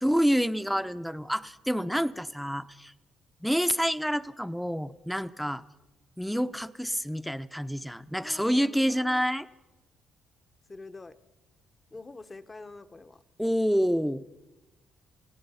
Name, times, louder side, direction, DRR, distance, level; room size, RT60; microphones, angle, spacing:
voice 1, 0.0-2.9 3.4-5.7 6.2-9.5 13.4-14.2, equal, ahead, 13 dB, 0.7 m, -28 dB
voice 2, 8.2-9.2 10.7-11.2 11.9-13.2, left 3 dB, 25° left, 11 dB, 1.0 m, -46 dB
28.5 x 17.0 x 5.6 m, 1.0 s
cardioid pair, 90°, 0 cm